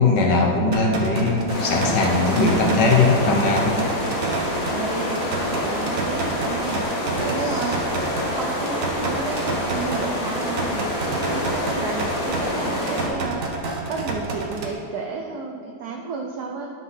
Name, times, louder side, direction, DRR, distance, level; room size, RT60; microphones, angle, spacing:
voice 1, 0.0-3.8 7.4-7.6, left 3 dB, 60° left, 1 dB, 1.3 m, -20 dB
sound 1, 0.7-14.7, right 3 dB, 60° right, 0.8 m, -30 dB
sound 2, 1.5-13.1, left 1 dB, 45° left, 1.6 m, -27 dB
voice 2, 4.7-6.9 7.1-13.4 13.9-16.7, right 4 dB, 90° right, 1 dB, 0.8 m, -32 dB
9.9 x 3.9 x 5.5 m, 2.3 s
omnidirectional pair, 2.4 m